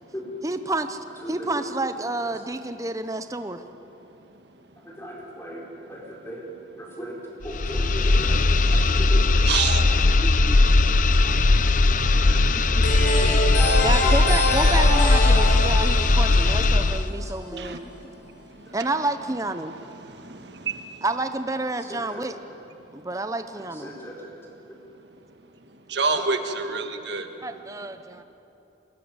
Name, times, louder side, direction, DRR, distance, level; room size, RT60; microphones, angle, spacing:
voice 1, 0.4-1.0 1.3-3.6 10.2-10.6 11.2-11.4 11.9-12.0 12.5-12.9 13.8-18.1 18.7-19.7 21.0-22.4 22.9-23.9 27.4-28.2, right 2 dB, 15° right, 9 dB, 0.8 m, -29 dB
voice 2, 1.2-1.5 4.8-7.2 7.4-9.7 11.2-11.3 11.8-13.7 14.0-14.3 14.9-15.0 17.5-17.7 21.8-22.2 23.7-24.3 26.0-26.1, equal, 15° left, -3 dB, 4.6 m, -38 dB
sound 1, 7.4-17.1, left 2 dB, 45° left, 0.7 m, -19 dB
voice 3, 9.4-9.8 17.6-17.8 25.9-27.3, right 4 dB, 65° right, 6 dB, 1.6 m, -26 dB
sound 2, 12.8-17.5, left 1 dB, 75° left, 4.0 m, -26 dB
22.5 x 19.5 x 9.7 m, 2.9 s
head